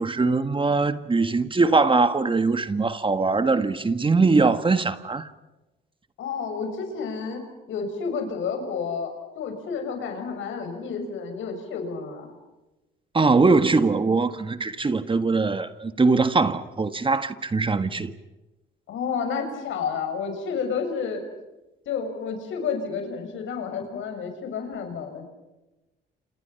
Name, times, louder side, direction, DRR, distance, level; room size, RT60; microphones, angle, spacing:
voice 1, 0.0-5.3 13.1-18.1, right 3 dB, 25° right, 1.6 m, -21 dB
voice 2, 6.2-9.1 9.3-12.3 18.9-21.2 21.8-25.2, left 5 dB, 80° left, 6.5 m, -30 dB
29.5 x 28.0 x 5.8 m
cardioid pair, 90°, 20 cm